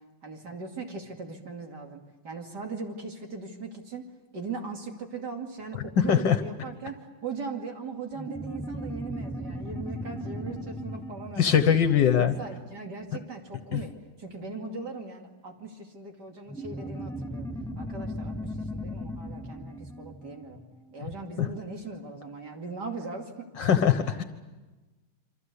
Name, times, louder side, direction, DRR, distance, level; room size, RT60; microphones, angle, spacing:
voice 1, 0.2-4.1 4.3-11.7 12.2-17.5 17.8-20.6 20.9-23.5, right 4 dB, 60° right, 2 dB, 3.0 m, -39 dB
sound 1, 8.2-13.1 16.5-21.4, equal, 5° left, 0.6 m, -38 dB
voice 2, 11.4-12.3 13.7-13.8 21.4-21.5 23.6-24.2, left 8 dB, 70° left, 8 dB, 1.8 m, -21 dB
27.5 x 25.0 x 8.4 m, 1.2 s
omnidirectional pair, 2.0 m